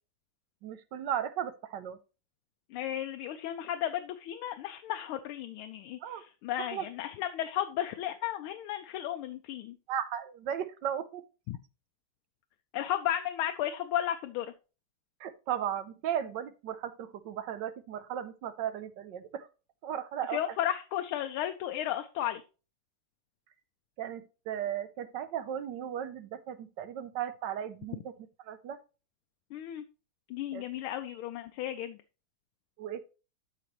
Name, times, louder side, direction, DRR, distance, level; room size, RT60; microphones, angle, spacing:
voice 1, 0.6-2.0 6.0-6.2 6.6-6.9 9.9-11.2 15.2-19.5 19.8-20.4 24.0-28.1 28.4-28.8 30.5-30.6 32.8-33.0, right 9 dB, 70° right, 12 dB, 1.1 m, -36 dB
voice 2, 2.7-9.8 11.5-11.6 12.7-14.5 20.3-22.4 29.5-29.8 30.3-32.0, left 11 dB, 80° left, 7 dB, 1.5 m, -34 dB
12.0 x 4.9 x 3.1 m, 0.33 s
omnidirectional pair, 2.3 m